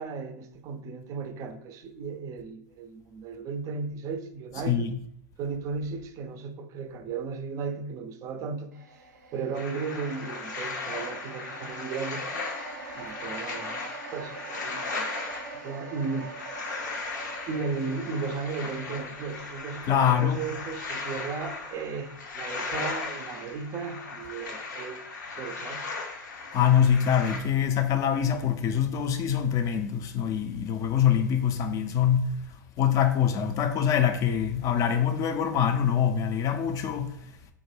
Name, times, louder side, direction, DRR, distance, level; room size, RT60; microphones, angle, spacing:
voice 1, 0.0-4.9 5.4-9.0 9.3-12.3 12.9-15.1 15.6-16.3 17.5-25.0 25.4-25.8, right 5 dB, 35° right, 0.4 m, -35 dB
voice 2, 4.5-5.0 19.9-20.5 26.5-32.4 32.8-37.3, left 8 dB, 35° left, 0.4 m, -24 dB
sound 1, 8.7-23.1 23.4-23.6, right 4 dB, 90° right, 0.5 m, -45 dB
sound 2, 9.5-27.4, left 3 dB, 80° left, 0.6 m, -37 dB
3.5 x 2.1 x 3.2 m
hypercardioid pair, 100°, 10 cm